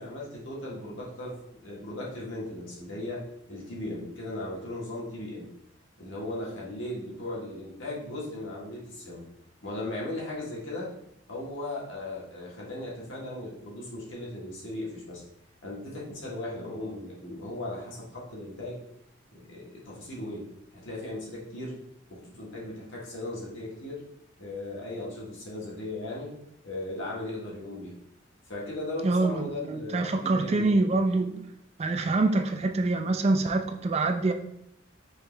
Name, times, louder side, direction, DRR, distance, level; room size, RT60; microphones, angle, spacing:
voice 1, 0.0-5.5 6.0-9.3 9.6-10.9 11.3-15.2 15.6-18.8 19.3-20.5 20.7-21.8 22.1-24.0 24.4-26.3 26.6-27.9 28.5-30.8, left 1 dB, 75° left, -4 dB, 1.5 m, -37 dB
voice 2, 29.0-31.4 31.8-34.3, right 3 dB, 30° right, 6 dB, 0.3 m, -25 dB
4.8 x 3.0 x 3.3 m, 0.76 s
head